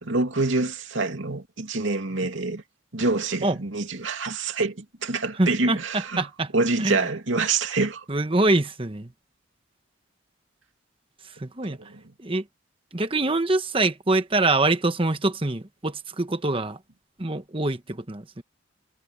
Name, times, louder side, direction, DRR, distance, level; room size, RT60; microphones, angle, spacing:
voice 1, 0.0-2.6 2.9-6.3 6.5-8.0 11.6-12.1, right 3 dB, 75° right, 2.5 m, -26 dB
voice 2, 5.4-6.5 6.8-7.1 8.1-9.1 11.4-11.8 12.2-12.4 12.9-16.8 17.2-18.4, right 2 dB, 25° right, 1.2 m, -24 dB
head